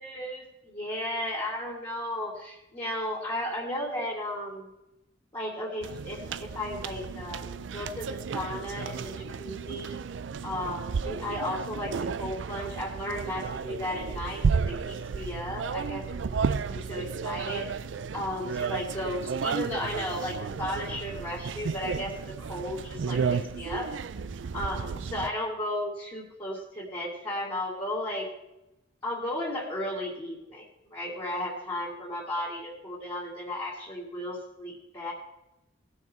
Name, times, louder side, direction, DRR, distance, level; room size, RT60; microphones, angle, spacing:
voice 1, 0.0-4.7 5.3-10.0 10.4-16.0 16.5-17.7 18.1-23.9 24.5-28.3 29.0-35.1, left 1 dB, 25° left, -7 dB, 2.4 m, -34 dB
sound 1, 5.8-25.3, right 5 dB, 75° right, 0.4 m, -33 dB
18.5 x 6.4 x 4.4 m, 0.91 s
head